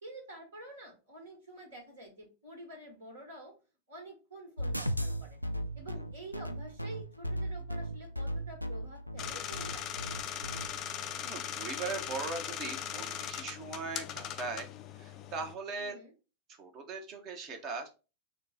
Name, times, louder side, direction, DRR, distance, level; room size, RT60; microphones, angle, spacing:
voice 1, 0.0-3.5 3.9-5.4 5.7-9.9 15.8-16.1, right 1 dB, 65° right, 0 dB, 1.6 m, -48 dB
sound 1, 4.6-10.7, equal, 90° right, 0.3 m, -36 dB
sound 2, 9.2-15.5, left 10 dB, 35° left, 0.4 m, -39 dB
voice 2, 11.2-14.7 15.0-15.9 16.6-17.9, right 4 dB, 35° right, 5 dB, 0.9 m, -39 dB
4.3 x 2.3 x 3.9 m, 0.32 s
figure-of-eight pair, 90°, 0 cm